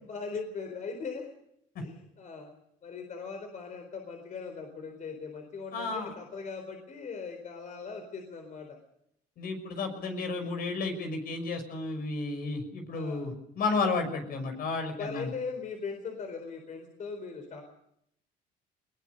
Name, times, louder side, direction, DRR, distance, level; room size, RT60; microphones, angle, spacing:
voice 1, 0.1-1.3 1.8-2.5 2.8-8.8 12.9-13.3 15.0-17.6, left 5 dB, 45° left, 4 dB, 4.3 m, -39 dB
voice 2, 5.7-6.1 9.4-15.3, left 3 dB, 65° left, 6 dB, 6.0 m, -32 dB
21.0 x 20.5 x 6.7 m, 0.74 s
cardioid pair, 110°, 17 cm